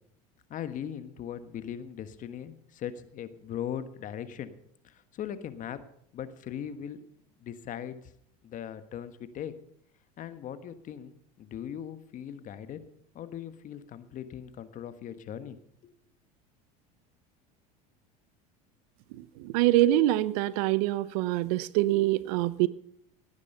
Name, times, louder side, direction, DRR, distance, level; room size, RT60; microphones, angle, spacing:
voice 1, 0.5-4.5 4.8-5.8 6.1-7.0 7.4-8.0 8.4-9.5 10.2-12.8 13.1-15.6 15.8-15.9, left 9 dB, 40° left, 11 dB, 1.4 m, -39 dB
voice 2, 19.4-22.7, right 15 dB, 70° right, 18 dB, 0.8 m, -25 dB
17.5 x 9.7 x 5.5 m, 0.68 s
supercardioid pair, 100°, 20 cm